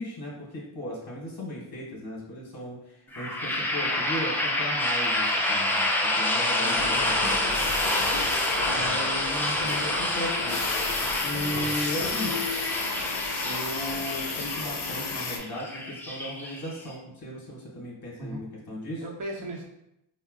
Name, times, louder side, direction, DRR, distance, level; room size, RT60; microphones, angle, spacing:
voice 1, 0.0-5.9 6.1-8.2 8.7-10.6 11.2-12.4 13.4-19.0, equal, 45° left, -4 dB, 1.0 m, -36 dB
sound 1, 3.1-16.9, left 1 dB, 5° left, 0.4 m, -28 dB
voice 2, 6.6-7.0 8.7-9.0 18.2-18.5 19.0-19.6, right 1 dB, 40° right, -1 dB, 0.8 m, -38 dB
sound 2, 6.7-15.4, left 4 dB, 60° left, 0.6 m, -33 dB
3.7 x 2.1 x 2.4 m, 0.82 s
cardioid pair, 65°, 49 cm